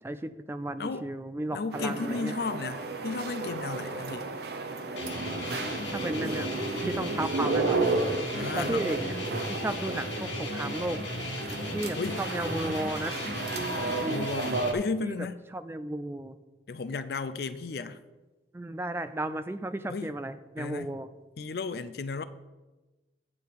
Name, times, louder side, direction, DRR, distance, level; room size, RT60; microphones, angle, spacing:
voice 1, 0.0-2.3 5.9-6.5 6.9-7.9 8.6-9.2 9.5-11.0 11.7-13.3 13.9-14.3 15.0-15.3 15.5-16.4 18.5-21.1, right 1 dB, 15° right, 0.3 m, -34 dB
voice 2, 0.8-1.1 1.5-4.3 8.3-9.0 12.0-12.2 14.1-15.4 16.7-18.0 19.9-20.1 20.6-20.9 21.4-22.2, left 4 dB, 55° left, 0.4 m, -34 dB
sound 1, 1.7-14.7, right 3 dB, 60° right, 0.8 m, -33 dB
sound 2, 5.0-14.7, left 2 dB, 85° left, 1.6 m, -36 dB
8.5 x 6.9 x 4.7 m
head